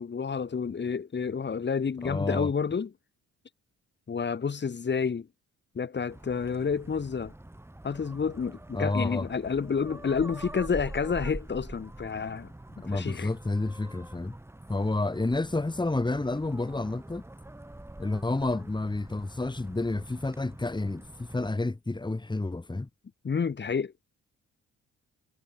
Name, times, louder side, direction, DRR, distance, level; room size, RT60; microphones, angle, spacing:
voice 1, 0.0-2.9 4.1-5.3 5.7-7.3 7.8-12.5 12.9-13.3 23.2-23.9, left 6 dB, 35° left, 3.0 m, -29 dB
voice 2, 2.0-2.5 8.7-9.3 12.8-14.3 14.7-17.2 18.0-22.9, left 2 dB, 15° left, 3.8 m, -30 dB
sound 1, 6.1-21.5, right 1 dB, 10° right, 2.6 m, -45 dB
cardioid pair, 90°, 30 cm